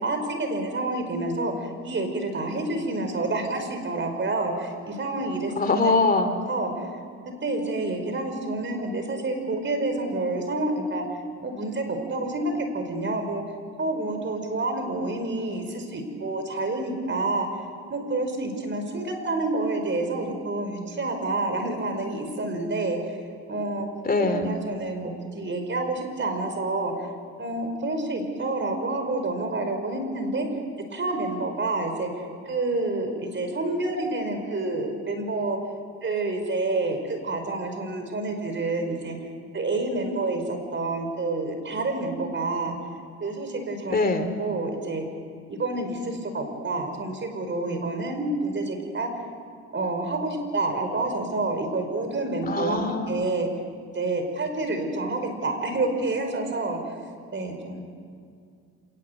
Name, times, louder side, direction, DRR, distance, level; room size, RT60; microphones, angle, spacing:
voice 1, 0.0-5.5 6.5-7.0 7.4-11.0 11.4-13.4 13.8-17.5 17.9-23.2 23.5-23.9 24.2-27.1 27.4-30.5 30.9-35.6 36.0-39.2 39.5-42.8 43.2-44.0 44.4-45.0 45.5-49.1 49.7-53.5 53.9-56.8 57.3-57.8, right 2 dB, 40° right, 6 dB, 5.1 m, -28 dB
voice 2, 5.6-6.3 24.0-24.5 43.9-44.2 52.5-53.2, left 3 dB, 30° left, 7 dB, 3.0 m, -23 dB
27.0 x 19.5 x 8.2 m, 2.2 s
cardioid pair, 90°, 30 cm